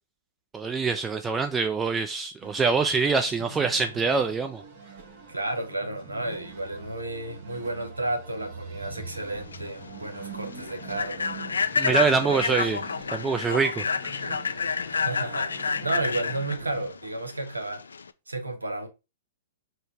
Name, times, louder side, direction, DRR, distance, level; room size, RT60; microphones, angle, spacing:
voice 1, 0.5-4.6 11.8-12.8 13.1-14.2, right 5 dB, 15° right, 0.4 m, -25 dB
sound 1, 2.4-16.9, right 3 dB, 45° right, 1.3 m, -44 dB
voice 2, 5.3-11.4 11.8-12.6 14.9-17.9 18.3-18.9, right 2 dB, 85° right, 0.9 m, -32 dB
Human voice / Train, 9.2-18.1, left 5 dB, 75° left, 0.3 m, -30 dB
4.3 x 2.2 x 4.6 m
figure-of-eight pair, 110°, 0 cm